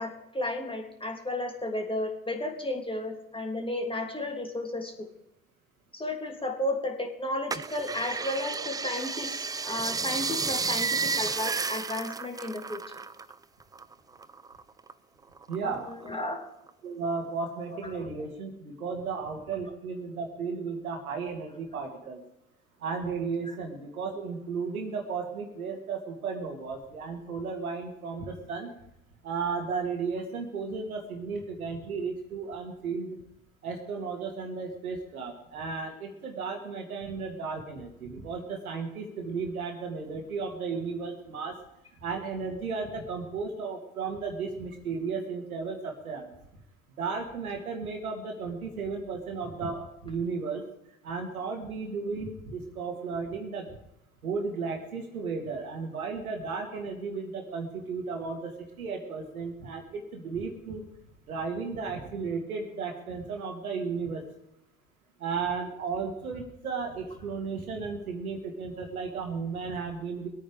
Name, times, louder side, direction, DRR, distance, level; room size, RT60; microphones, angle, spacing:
voice 1, 0.0-5.1 5.9-12.8 15.6-15.7 16.0-16.5, left 1 dB, 10° left, 2 dB, 3.1 m, -33 dB
sound 1, 7.5-13.3 13.6-14.9 15.4-16.2 16.7-16.8, right 4 dB, 10° right, 0.4 m, -32 dB
voice 2, 15.5-16.0 16.8-22.2 22.8-28.7 29.2-33.2 33.6-41.6 42.0-46.3 47.0-50.6 51.0-53.7 54.2-60.8 61.3-64.2 65.2-70.3, right 5 dB, 80° right, 4 dB, 2.4 m, -34 dB
21.5 x 8.9 x 5.0 m, 0.84 s
figure-of-eight pair, 65°, 43 cm